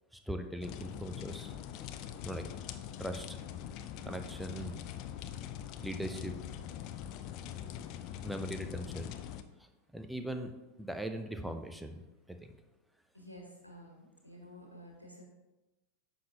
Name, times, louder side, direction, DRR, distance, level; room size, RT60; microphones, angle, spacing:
voice 1, 0.1-1.5 2.2-2.5 3.0-3.4 4.0-4.7 5.8-6.4 7.5-7.7 8.2-9.1 9.9-10.5 10.8-12.0 12.3-12.6, equal, 5° right, 7 dB, 0.7 m, -40 dB
sound 1, 0.6-9.4, left 10 dB, 40° left, 0.5 m, -43 dB
voice 2, 13.1-15.2, equal, 90° left, 1 dB, 1.4 m, -51 dB
9.4 x 6.6 x 2.8 m, 1.1 s
figure-of-eight pair, 90°, 0 cm